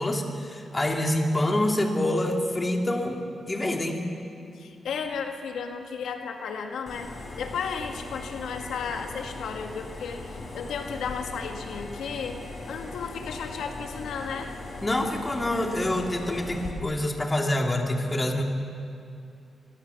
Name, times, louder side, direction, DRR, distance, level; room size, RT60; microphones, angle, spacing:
voice 1, 0.0-3.2 3.5-4.0 14.8-18.4, left 1 dB, 20° left, 2 dB, 2.9 m, -26 dB
voice 2, 4.5-7.1 7.4-14.5, left 6 dB, 90° left, 4 dB, 1.8 m, -34 dB
sound 1, 6.9-16.7, left 2 dB, 50° left, 4.9 m, -39 dB
27.0 x 22.0 x 7.1 m, 2.4 s
cardioid pair, 115°, 0 cm